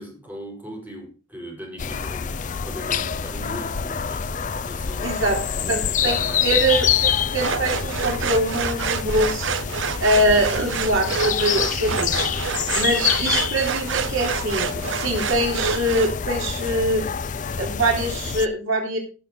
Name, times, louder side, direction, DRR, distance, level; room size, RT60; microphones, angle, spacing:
voice 1, 0.0-6.6, equal, 10° right, -2 dB, 4.9 m, -39 dB
sound 1, 1.8-18.5, left 7 dB, 40° left, 0.5 m, -26 dB
voice 2, 5.0-5.4 5.7-9.5 10.0-12.3 12.7-17.1 17.6-19.0, right 1 dB, 90° right, 0 dB, 3.3 m, -23 dB
sound 2, 7.4-16.1, right 6 dB, 70° right, 0.6 m, -28 dB
16.5 x 6.7 x 3.8 m, 0.34 s
head